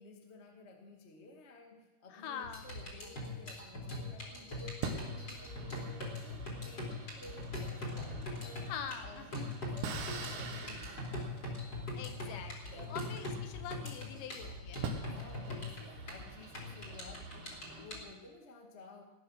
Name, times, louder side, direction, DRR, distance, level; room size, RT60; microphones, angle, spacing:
voice 1, 0.0-8.6 9.0-12.0 12.7-13.0 15.1-19.0, left 2 dB, 50° left, 1 dB, 0.7 m, -54 dB
voice 2, 2.1-2.6 8.7-9.6 12.0-14.8, left 8 dB, 85° left, 7 dB, 3.4 m, -44 dB
sound 1, 2.4-18.0, left 2 dB, 25° left, 3.5 m, -42 dB
sound 2, 3.4-4.1 4.8-14.0 14.4-14.5 14.8-17.9, right 5 dB, 75° right, 3.7 m, -46 dB
18.5 x 9.7 x 6.4 m, 1.1 s
omnidirectional pair, 5.1 m